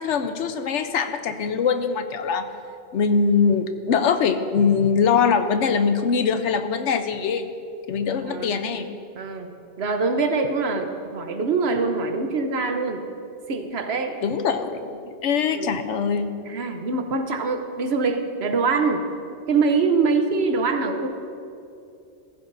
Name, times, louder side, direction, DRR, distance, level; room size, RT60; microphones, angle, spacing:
voice 1, 0.0-2.5 2.9-7.5 7.9-8.9 14.2-16.3, left 6 dB, 80° left, 9 dB, 1.0 m, -22 dB
voice 2, 8.2-8.6 9.2-9.5 9.8-13.0 13.5-14.2 15.5-15.7 16.5-19.1 19.5-21.1, right 4 dB, 65° right, 6 dB, 1.1 m, -24 dB
15.0 x 14.5 x 2.6 m, 2.6 s
omnidirectional pair, 1.2 m